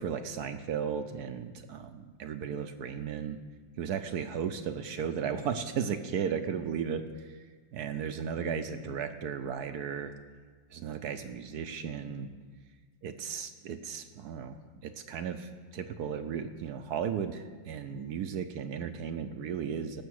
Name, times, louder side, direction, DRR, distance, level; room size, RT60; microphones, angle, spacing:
voice 1, 0.0-3.4 3.8-7.4 7.7-10.1 10.7-12.3 13.0-14.6 14.8-20.0, right 7 dB, 70° right, 8 dB, 1.1 m, -35 dB
17.5 x 6.6 x 6.3 m, 1.5 s
omnidirectional pair, 1.9 m